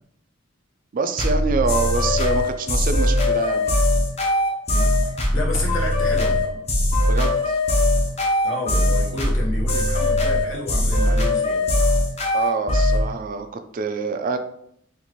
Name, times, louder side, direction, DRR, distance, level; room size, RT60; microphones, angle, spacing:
voice 1, 0.9-3.7 7.1-7.6 12.3-14.4, right 4 dB, 45° right, 8 dB, 0.3 m, -26 dB
sound 1, 1.2-13.1, left 1 dB, 35° left, 0.7 m, -20 dB
voice 2, 4.7-6.6 8.4-11.7, left 2 dB, 70° left, -2 dB, 1.0 m, -31 dB
3.9 x 2.5 x 3.0 m, 0.72 s
head